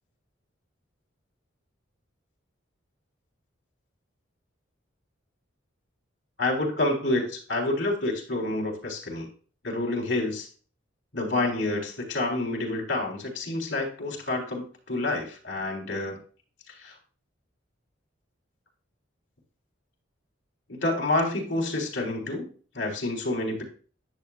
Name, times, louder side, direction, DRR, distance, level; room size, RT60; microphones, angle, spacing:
voice 1, 6.4-9.3 9.6-10.5 11.1-16.2 16.8-16.9 20.7-22.5 22.7-23.6, left 2 dB, 70° left, 1 dB, 3.6 m, -28 dB
10.5 x 7.0 x 2.4 m, 0.38 s
head